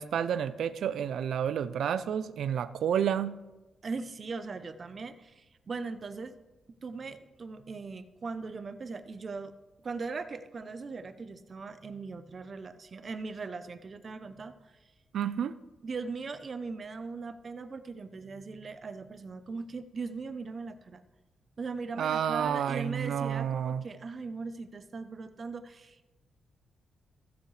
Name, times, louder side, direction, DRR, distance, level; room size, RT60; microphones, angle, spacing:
voice 1, 0.0-3.4 15.1-15.5 22.0-23.8, right 8 dB, 80° right, 14 dB, 0.4 m, -30 dB
voice 2, 3.8-6.3 6.8-9.5 9.8-14.8 15.8-21.0 21.6-26.1, right 4 dB, 40° right, 11 dB, 0.6 m, -39 dB
15.5 x 8.0 x 3.3 m, 1.1 s
wide cardioid pair, 130°, 0 cm